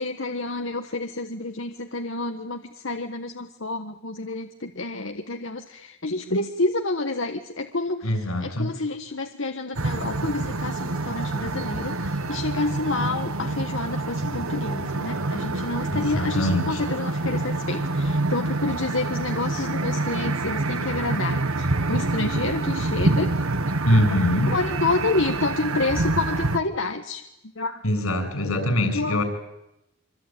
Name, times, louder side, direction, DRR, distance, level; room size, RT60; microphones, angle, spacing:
voice 1, 0.0-23.4 24.1-27.2 27.5-27.8 28.5-29.2, left 3 dB, 60° left, 5 dB, 1.4 m, -29 dB
voice 2, 8.0-8.7 15.9-16.8 23.8-24.5 27.8-29.2, left 1 dB, 85° left, 8 dB, 7.2 m, -23 dB
sound 1, 9.7-26.6, right 2 dB, 80° right, 1.4 m, -27 dB
26.0 x 25.0 x 9.1 m, 0.86 s
head